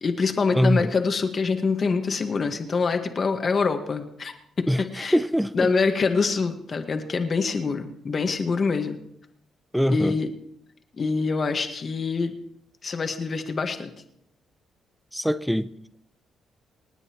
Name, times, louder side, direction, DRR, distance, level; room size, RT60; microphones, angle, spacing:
voice 1, 0.0-5.2 5.5-9.0 9.9-10.3 10.9-12.4 12.8-13.9, left 4 dB, 40° left, 1.7 m, -25 dB
voice 2, 0.5-0.9 4.7-5.7 9.7-10.2 15.1-15.7, equal, ahead, 0.6 m, -23 dB
28.0 x 9.5 x 3.1 m
cardioid pair, 95°, 0 cm